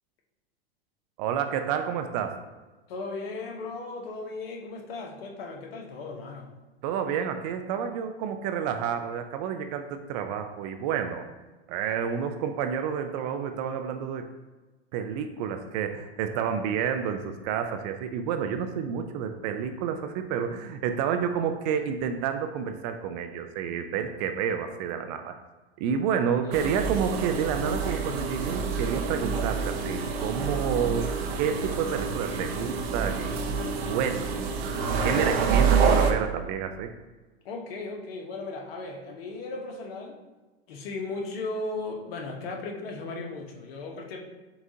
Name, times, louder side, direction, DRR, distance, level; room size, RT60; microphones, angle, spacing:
voice 1, 1.2-2.4 6.8-11.3 11.7-14.3 14.9-25.3 25.8-33.4 33.9-34.5 35.0-36.9, right 7 dB, 40° right, 7 dB, 0.4 m, -29 dB
voice 2, 2.9-6.5 26.1-26.9 37.4-40.2 40.7-44.2, left 3 dB, 65° left, 1 dB, 1.0 m, -36 dB
sound 1, 26.5-36.1, right 5 dB, 70° right, 0.7 m, -27 dB
6.8 x 2.4 x 2.7 m, 1.2 s
hypercardioid pair, 115°, 32 cm